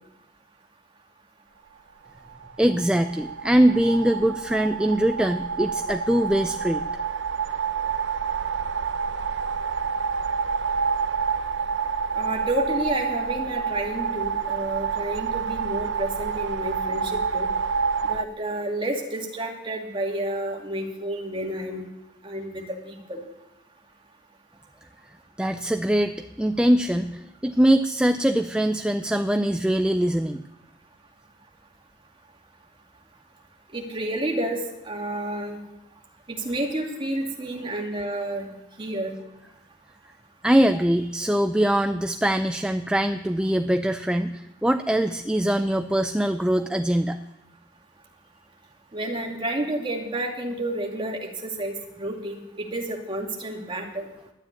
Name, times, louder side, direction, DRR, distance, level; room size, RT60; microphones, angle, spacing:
sound 1, 2.3-18.2, right 5 dB, 70° right, 0.6 m, -28 dB
voice 1, 2.6-6.8 25.4-30.4 40.4-47.2, right 1 dB, 5° right, 7 dB, 0.4 m, -22 dB
voice 2, 12.1-17.5 18.0-21.8 22.2-23.2 33.7-34.6 34.8-35.6 36.3-38.5 38.8-39.2 48.9-54.1, right 1 dB, 25° right, 0 dB, 2.4 m, -30 dB
12.5 x 9.6 x 9.7 m, 0.91 s
head